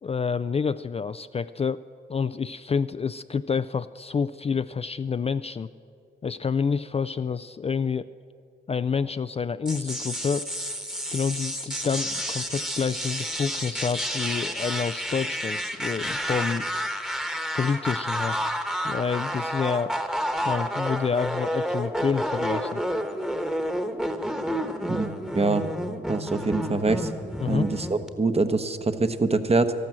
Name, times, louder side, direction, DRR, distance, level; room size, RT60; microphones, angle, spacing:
voice 1, 0.0-1.8 2.1-5.7 6.2-8.1 8.7-10.5 11.1-16.7 17.5-18.4 18.8-20.0 20.4-22.8 27.4-27.7, left 6 dB, 30° left, 13 dB, 0.4 m, -28 dB
sound 1, 9.6-28.1, equal, 5° right, 1.2 m, -30 dB
voice 2, 24.9-25.7 26.1-27.1 27.5-29.7, right 3 dB, 30° right, 10 dB, 1.0 m, -24 dB
13.0 x 12.0 x 7.6 m, 2.3 s
cardioid pair, 60°, 20 cm